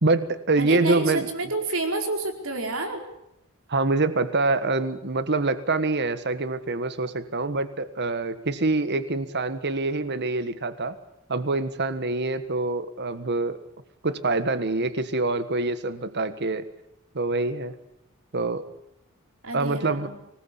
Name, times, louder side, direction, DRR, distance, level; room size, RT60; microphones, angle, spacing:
voice 1, 0.0-1.3 3.7-10.9 11.3-13.6 14.0-16.6 17.1-17.7 18.3-18.6 19.5-20.1, right 3 dB, 50° right, 12 dB, 1.5 m, -25 dB
voice 2, 0.6-3.0 19.4-20.1, right 2 dB, 70° right, 4 dB, 4.7 m, -29 dB
25.5 x 19.5 x 8.5 m, 0.80 s
head